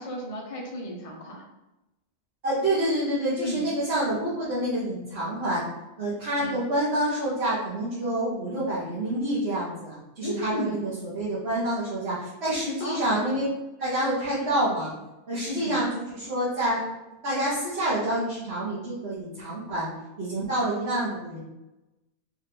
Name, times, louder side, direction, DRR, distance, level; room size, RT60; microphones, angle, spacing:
voice 1, 0.0-1.4 3.4-3.6 6.4-6.6 10.2-10.8 12.8-13.2 15.5-15.8, equal, 25° left, -2 dB, 0.9 m, -34 dB
voice 2, 2.4-5.6 6.0-13.4 13.8-14.9 15.3-16.8 17.2-19.9 20.2-21.4, right 1 dB, 50° right, -10 dB, 1.6 m, -27 dB
5.1 x 2.7 x 3.8 m, 0.98 s
omnidirectional pair, 1.5 m